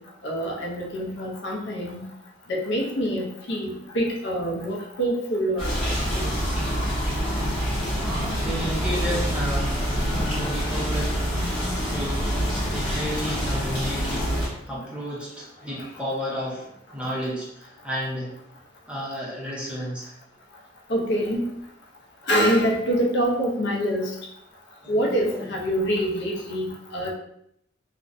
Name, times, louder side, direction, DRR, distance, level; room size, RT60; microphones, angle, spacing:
voice 1, 0.2-2.1 2.5-6.3 20.9-21.4 22.3-24.1 24.9-27.1, equal, 60° left, -1 dB, 0.5 m, -25 dB
sound 1, 5.6-14.5, equal, 25° left, 0.8 m, -26 dB
voice 2, 7.8-9.9 10.2-11.6 11.9-18.4 18.9-20.1 24.8-25.7, equal, 5° right, -5 dB, 0.5 m, -32 dB
2.5 x 2.0 x 2.5 m, 0.75 s
head